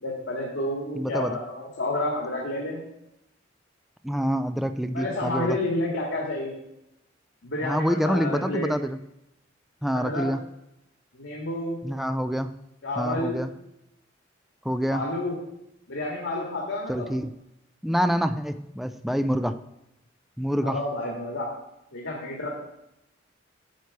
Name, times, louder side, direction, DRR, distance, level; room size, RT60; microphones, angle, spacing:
voice 1, 0.0-2.9 4.9-6.6 7.4-8.7 9.9-10.3 11.1-11.8 12.8-13.4 14.9-15.4 15.9-17.1 20.6-21.5 21.9-22.5, left 1 dB, 85° left, -3 dB, 1.9 m, -30 dB
voice 2, 1.0-1.4 4.0-5.6 7.6-9.0 9.8-10.4 11.8-12.5 13.0-13.5 14.6-15.0 16.9-17.3 17.8-19.6 20.4-20.8, equal, ahead, 9 dB, 0.4 m, -26 dB
9.3 x 6.9 x 4.7 m, 0.84 s
head